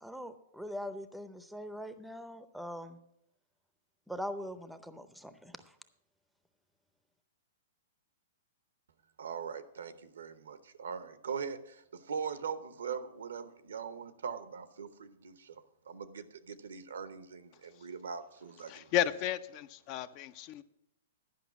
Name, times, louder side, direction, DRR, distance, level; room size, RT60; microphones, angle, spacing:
voice 1, 0.0-3.0 4.1-5.6, equal, ahead, 11 dB, 0.6 m, -42 dB
voice 2, 9.2-18.9, right 6 dB, 85° right, 12 dB, 0.8 m, -41 dB
voice 3, 18.7-20.6, left 11 dB, 40° left, 14 dB, 0.5 m, -33 dB
10.5 x 5.5 x 7.1 m, 0.81 s
hypercardioid pair, 130°, 0 cm